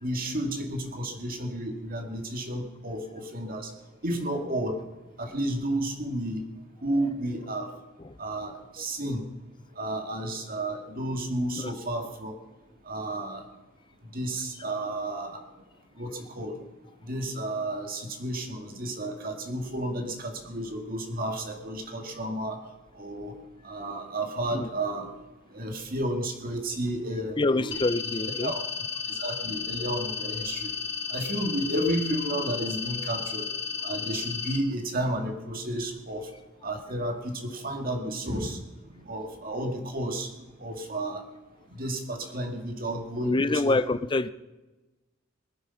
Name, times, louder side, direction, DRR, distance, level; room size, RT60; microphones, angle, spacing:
voice 1, 0.0-3.7 4.0-4.8 5.2-6.4 6.8-7.7 8.2-9.2 9.8-12.4 12.9-13.4 14.1-15.4 16.0-16.6 17.1-22.6 22.9-23.3 23.6-25.1 25.5-27.8 28.4-28.6 29.1-30.7 31.1-33.5 33.8-36.3 36.6-38.6 38.9-40.3 40.6-41.2 41.8-43.8, right 1 dB, 45° right, 4 dB, 2.2 m, -32 dB
voice 2, 27.4-28.5 43.2-44.3, left 2 dB, 25° left, 15 dB, 0.5 m, -26 dB
sound 1, 27.7-34.6, left 6 dB, 55° left, 1.9 m, -33 dB
19.5 x 10.5 x 5.7 m, 1.1 s
head